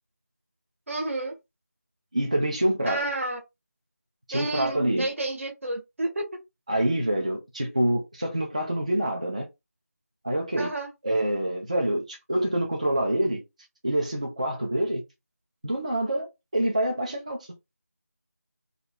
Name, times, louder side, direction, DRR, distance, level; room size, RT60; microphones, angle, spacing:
voice 1, 0.9-1.4 2.9-3.4 4.3-6.2 10.6-10.9, right 2 dB, 50° right, 0.8 m, -30 dB
voice 2, 2.1-3.0 4.3-5.1 6.7-9.5 10.2-10.7 11.0-13.4 13.8-15.0 15.6-16.3 16.5-17.5, right 1 dB, 25° right, 0.4 m, -26 dB
2.3 x 2.2 x 3.5 m
figure-of-eight pair, 170°, 9 cm